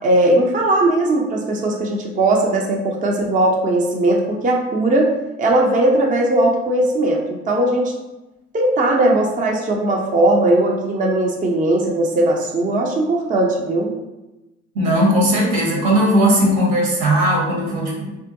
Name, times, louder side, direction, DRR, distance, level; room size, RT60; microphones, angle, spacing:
voice 1, 0.0-5.1 5.4-7.9 8.5-13.9, right 1 dB, 25° right, -1 dB, 0.4 m, -18 dB
voice 2, 14.7-18.0, equal, 70° right, -3 dB, 1.0 m, -17 dB
2.6 x 2.1 x 2.5 m, 1.0 s
hypercardioid pair, 55°, 36 cm